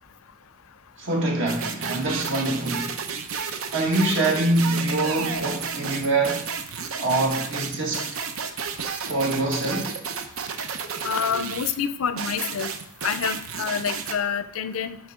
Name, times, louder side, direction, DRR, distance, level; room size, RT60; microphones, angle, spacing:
voice 1, 1.0-3.0 3.7-6.5 7.0-8.2 9.0-9.9, right 2 dB, 65° right, 1.8 m, -24 dB
sound 1, 1.5-11.7 12.2-14.1, right 6 dB, 90° right, 0.7 m, -32 dB
voice 2, 11.0-12.7 13.0-15.0, left 7 dB, 90° left, 0.5 m, -27 dB
7.9 x 5.1 x 3.7 m
head